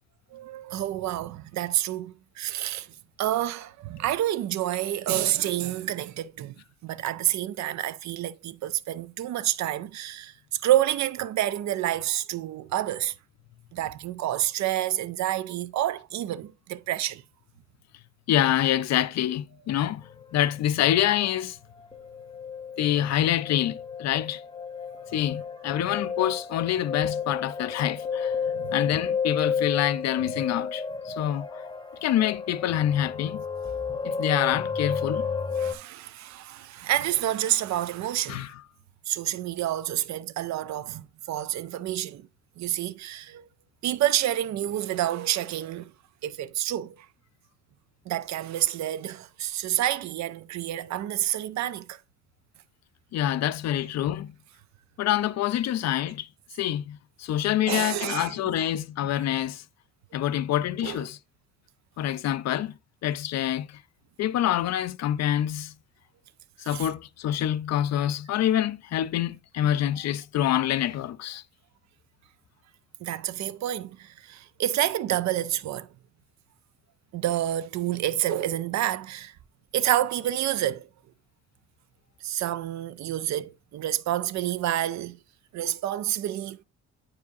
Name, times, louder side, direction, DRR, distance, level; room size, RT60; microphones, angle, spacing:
voice 1, 0.3-6.5 6.8-13.1 13.7-17.2 28.5-28.8 35.0-35.3 35.6-38.5 39.1-42.3 42.6-43.4 43.8-45.9 46.2-47.1 48.1-52.0 57.7-58.4 60.8-61.1 66.6-66.9 69.6-69.7 73.0-75.9 77.1-79.3 79.7-80.9 82.2-85.2 85.5-86.6, right 13 dB, 65° right, 0.5 m, -28 dB
voice 2, 18.3-21.6 22.8-24.4 25.1-28.4 28.7-31.6 32.0-33.4 34.0-35.3 38.3-38.5 53.1-54.3 55.0-56.3 56.5-59.6 60.1-61.2 62.0-63.8 64.2-65.7 66.7-71.4, left 11 dB, 60° left, 0.5 m, -26 dB
sound 1, 20.2-20.3 20.8-21.4 21.7-35.7, left 6 dB, 15° left, 0.8 m, -32 dB
8.3 x 4.8 x 2.6 m
cardioid pair, 90°, 30 cm